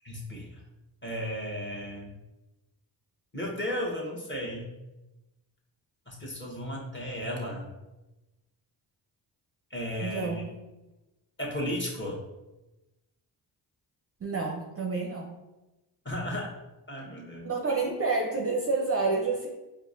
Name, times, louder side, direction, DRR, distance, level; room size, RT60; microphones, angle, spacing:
voice 1, 0.0-0.6 1.0-2.1 3.3-4.7 6.1-7.7 9.7-10.4 11.4-12.2 16.0-16.5 16.9-17.8, equal, 25° left, -3 dB, 1.1 m, -34 dB
voice 2, 10.0-10.5 14.2-15.4 17.4-19.5, right 3 dB, 30° right, 0 dB, 0.6 m, -29 dB
4.7 x 2.2 x 2.5 m, 1.0 s
supercardioid pair, 45°, 49 cm